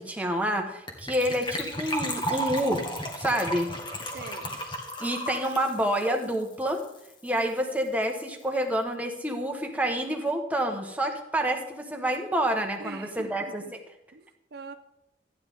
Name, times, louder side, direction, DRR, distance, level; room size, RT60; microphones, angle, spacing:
voice 1, 0.0-2.8 3.1-3.7 5.0-6.8 7.2-13.6, right 1 dB, 10° right, 3 dB, 1.2 m, -28 dB
Gurgling / Trickle dribble / Fill (with liquid), 0.9-7.1 7.4-7.5 7.6-7.9 8.2-8.3, equal, 25° left, 1.6 m, -34 dB
voice 2, 4.1-4.6 12.8-13.7 14.1-14.8, right 3 dB, 60° right, 9 dB, 0.6 m, -43 dB
14.0 x 9.9 x 3.6 m, 0.86 s
head